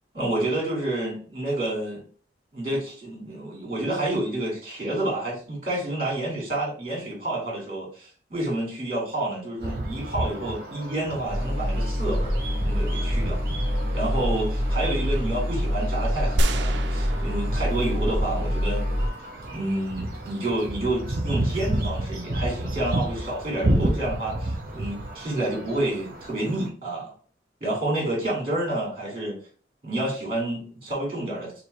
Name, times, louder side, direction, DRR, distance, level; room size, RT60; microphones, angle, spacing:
voice 1, 0.1-2.0 2.5-13.4 13.9-18.8 19.5-27.1 27.6-29.4 29.8-31.6, right 1 dB, 30° right, -4 dB, 2.2 m, -29 dB
sound 1, 9.6-26.7, right 1 dB, 50° right, 0.9 m, -32 dB
sound 2, 11.3-19.1, equal, 10° right, 1.8 m, -26 dB
sound 3, 16.4-18.7, right 1 dB, 75° right, 0.4 m, -28 dB
5.4 x 2.3 x 3.3 m, 0.42 s
head